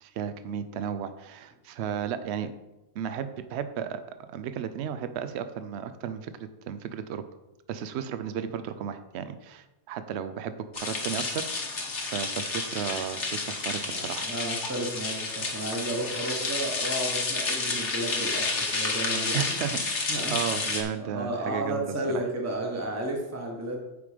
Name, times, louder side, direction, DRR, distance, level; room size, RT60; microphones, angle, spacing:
voice 1, 0.0-2.5 3.0-4.0 4.3-7.2 7.7-14.3 19.3-21.8, right 8 dB, 75° right, 11 dB, 0.9 m, -34 dB
sound 1, 10.7-20.8, left 3 dB, 85° left, 1.6 m, -30 dB
voice 2, 13.9-19.7 20.1-20.4 21.0-23.8, right 1 dB, 15° right, 1 dB, 1.0 m, -33 dB
8.4 x 5.2 x 5.0 m, 1.0 s
omnidirectional pair, 1.2 m